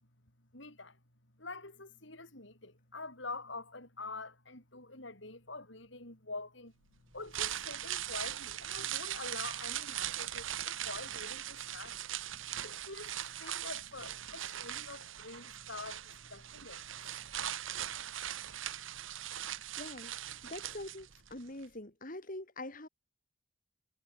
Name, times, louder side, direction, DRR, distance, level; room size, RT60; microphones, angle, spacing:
voice 1, 0.5-1.0 1.4-6.7 7.1-12.0 12.3-16.9 17.4-17.5, left 3 dB, 65° left, 7.4 m, -46 dB
sound 1, 7.1-21.3 21.6-21.7, right 11 dB, 75° right, 1.5 m, -40 dB
voice 2, 19.8-20.2 20.5-22.9, left 1 dB, 40° left, 3.7 m, -44 dB
head